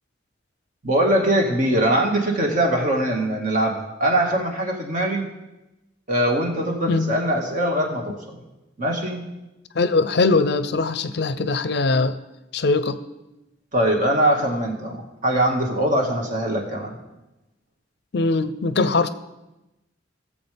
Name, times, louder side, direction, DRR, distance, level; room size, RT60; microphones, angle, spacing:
voice 1, 0.8-5.3 6.1-8.4 8.8-9.2 13.7-17.0, right 1 dB, 45° right, 0 dB, 1.8 m, -22 dB
voice 2, 9.8-12.2 12.5-13.0 18.1-19.1, left 3 dB, 60° left, 13 dB, 0.5 m, -21 dB
18.5 x 7.3 x 3.4 m, 0.98 s
head